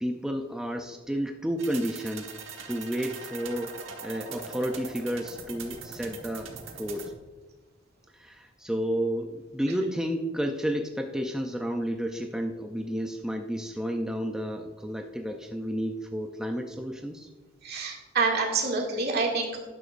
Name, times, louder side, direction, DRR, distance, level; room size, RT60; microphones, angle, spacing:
voice 1, 0.0-2.3 2.7-3.7 4.0-7.1 8.1-17.3, equal, 5° right, 3 dB, 0.5 m, -31 dB
sound 1, 1.6-7.1, right 5 dB, 70° right, 1.3 m, -42 dB
voice 2, 17.6-19.6, right 4 dB, 55° right, 0 dB, 2.3 m, -27 dB
12.0 x 10.0 x 2.6 m, 1.3 s
head